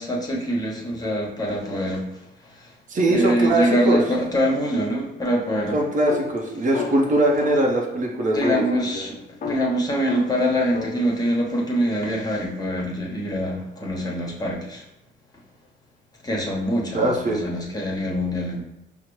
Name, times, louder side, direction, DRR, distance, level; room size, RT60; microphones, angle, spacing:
voice 1, 0.0-2.1 2.4-2.7 3.1-5.8 8.3-14.8 16.2-18.6, equal, 20° left, -2 dB, 1.0 m, -24 dB
voice 2, 2.9-4.0 5.7-9.0 16.9-17.4, right 1 dB, 40° right, -1 dB, 0.8 m, -21 dB
sound 1, 6.0-7.9 8.4-11.0, left 6 dB, 40° left, 0.5 m, -34 dB
5.5 x 2.1 x 3.1 m, 0.87 s
cardioid pair, 90°, 20 cm